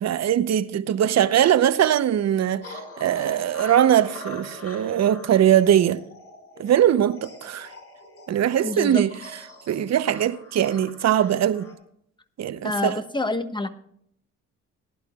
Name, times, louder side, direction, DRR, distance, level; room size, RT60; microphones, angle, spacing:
voice 1, 0.0-6.0 6.6-7.7 8.3-9.1 9.7-11.7 12.4-13.0, right 10 dB, 60° right, 0.9 m, -21 dB
sound 1, 2.6-11.7, left 2 dB, 50° left, 5.5 m, -43 dB
voice 2, 8.6-9.0 12.6-13.7, left 2 dB, 15° left, 1.2 m, -27 dB
19.5 x 11.5 x 2.4 m
cardioid pair, 90°, 30 cm